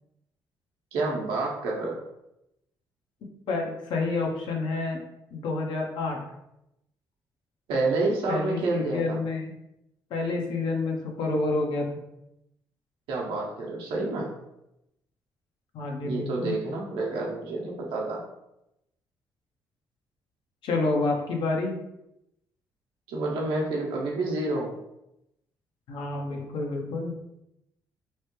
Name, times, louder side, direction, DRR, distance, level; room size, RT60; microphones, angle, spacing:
voice 1, 0.9-2.0 7.7-9.2 13.1-14.3 16.0-18.2 23.1-24.7, right 2 dB, 80° right, -2 dB, 0.8 m, -29 dB
voice 2, 3.5-5.0 5.3-6.2 8.3-9.5 10.1-12.0 15.7-16.6 20.6-21.8 25.9-27.1, left 3 dB, 70° left, 1 dB, 0.6 m, -29 dB
3.1 x 2.1 x 3.0 m, 0.85 s
supercardioid pair, 65°, 9 cm